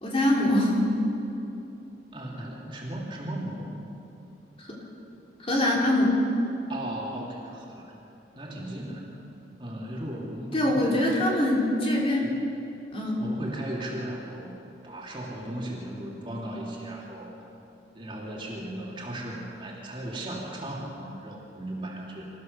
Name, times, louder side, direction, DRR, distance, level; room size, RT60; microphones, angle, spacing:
voice 1, 0.0-0.9 5.4-6.1 10.5-12.3 12.9-13.2, left 1 dB, 30° left, -3 dB, 3.3 m, -23 dB
voice 2, 2.1-3.7 6.7-7.9 8.3-9.2 9.6-11.3 12.2-12.4 13.2-14.5 14.8-17.3 17.9-22.3, right 1 dB, 25° right, -3 dB, 3.1 m, -36 dB
26.0 x 15.0 x 6.8 m, 2.9 s
head